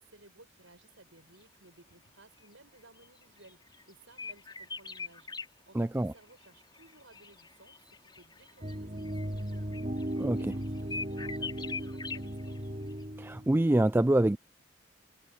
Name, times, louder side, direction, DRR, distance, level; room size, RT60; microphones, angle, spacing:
voice 1, 0.0-9.7 10.4-12.6, right 2 dB, 80° right, 7.0 m, -58 dB
sound 1, 3.0-5.5 6.2-12.6 12.9-13.0, left 4 dB, 25° left, 4.9 m, -43 dB
voice 2, 5.7-6.1 10.2-10.4 13.2-14.4, right 1 dB, 10° right, 0.3 m, -25 dB
sound 2, 8.6-13.6, right 1 dB, 35° right, 2.6 m, -37 dB
head